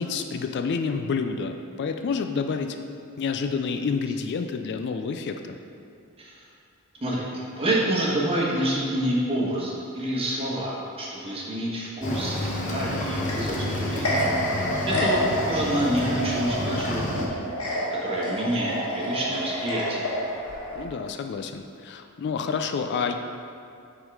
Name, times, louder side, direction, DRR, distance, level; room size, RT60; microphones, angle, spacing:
voice 1, 0.0-2.8 3.2-5.6 14.9-15.4 20.7-23.1, left 5 dB, 50° left, 6 dB, 0.3 m, -29 dB
voice 2, 7.0-14.1 14.9-17.4 17.7-20.1, right 1 dB, 25° right, -4 dB, 1.3 m, -28 dB
Cricket / Waves surf, 12.0-17.3, left 1 dB, 35° left, 0.9 m, -30 dB
sound 1, 13.0-20.8, equal, 75° left, 1.6 m, -29 dB
8.0 x 3.7 x 4.7 m, 2.4 s
head